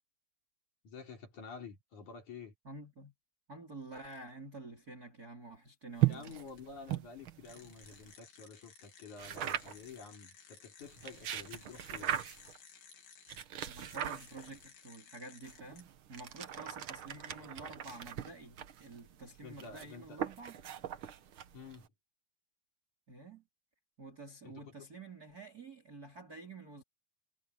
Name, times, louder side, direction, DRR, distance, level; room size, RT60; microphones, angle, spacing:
voice 1, 0.8-2.5 6.1-12.1 17.3-17.7 19.4-20.2 21.5-21.9 24.4-24.9, left 5 dB, 55° left, 6.1 m, -50 dB
voice 2, 2.7-3.1 3.5-6.3 13.6-20.6 21.0-21.1 23.1-23.4 24.0-26.8, right 3 dB, 25° right, 3.4 m, -49 dB
sound 1, 6.0-8.1 9.2-9.9 10.9-12.6 13.3-14.6 15.4-21.9, right 12 dB, 75° right, 1.2 m, -39 dB
sound 2, 6.1-6.6 6.9-7.0 7.4-13.4 13.8-15.8, left 7 dB, 80° left, 5.1 m, -58 dB
omnidirectional pair, 4.0 m